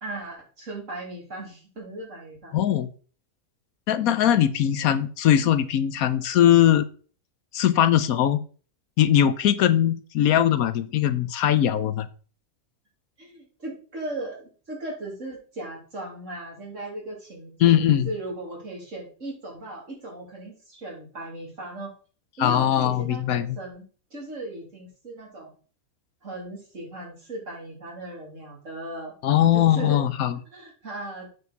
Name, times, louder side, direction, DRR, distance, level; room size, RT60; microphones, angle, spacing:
voice 1, 0.0-2.5 13.2-21.9 22.4-23.8 24.1-25.5 26.2-29.2 29.5-30.0 30.5-31.4, right 2 dB, 55° right, -2 dB, 3.3 m, -37 dB
voice 2, 2.5-2.9 3.9-6.9 7.5-8.4 9.0-12.1 17.6-18.1 22.4-23.6 29.2-30.4, left 11 dB, 75° left, 13 dB, 1.2 m, -20 dB
8.5 x 6.5 x 4.0 m, 0.39 s
omnidirectional pair, 1.5 m